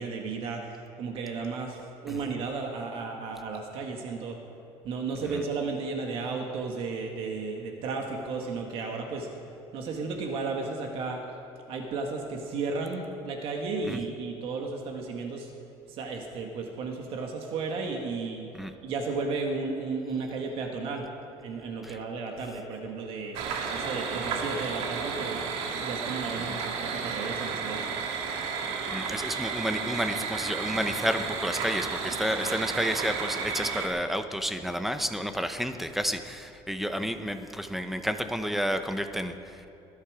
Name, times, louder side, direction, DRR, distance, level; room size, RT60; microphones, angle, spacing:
voice 1, 0.0-4.4 4.8-9.3 9.7-11.2 11.7-15.5 15.9-18.5 18.8-21.1 21.4-23.4 23.7-25.4 25.8-27.9, right 4 dB, 60° right, 2 dB, 1.7 m, -34 dB
sound 1, 23.3-33.9, right 5 dB, 75° right, 1.8 m, -32 dB
voice 2, 28.9-39.7, equal, ahead, 8 dB, 0.7 m, -31 dB
20.0 x 11.5 x 5.0 m, 2.9 s
cardioid pair, 155°, 11 cm